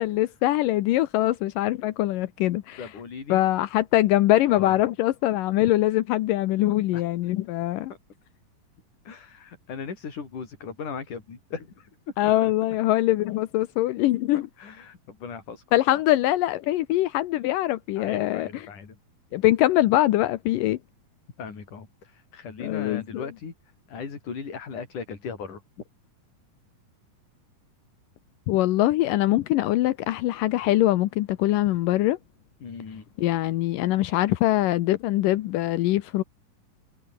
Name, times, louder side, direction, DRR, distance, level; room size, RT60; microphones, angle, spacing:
voice 1, 0.0-2.9 3.3-7.9 12.2-14.5 15.7-18.6 19.3-20.8 22.6-23.3 28.5-32.2 33.2-36.2, left 15 dB, 80° left, 2.5 m, -23 dB
voice 2, 2.8-3.4 4.5-4.8 6.9-7.0 9.1-11.9 12.2-12.5 14.6-15.6 15.9-16.0 18.0-19.0 21.4-23.5 23.9-25.6 32.6-33.0, left 5 dB, 65° left, 6.0 m, -38 dB
omnidirectional pair, 4.0 m